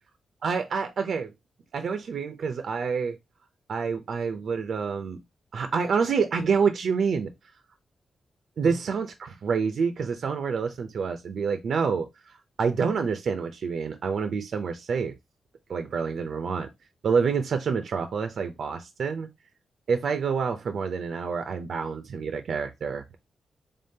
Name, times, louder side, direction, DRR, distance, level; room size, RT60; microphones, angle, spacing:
voice 1, 0.4-1.3 1.7-3.2 3.7-5.2 5.5-7.3 8.6-15.1 15.7-16.7 17.0-19.3 19.9-23.1, right 5 dB, 70° right, 0.4 m, -27 dB
3.6 x 3.6 x 2.7 m
cardioid pair, 75°, 0 cm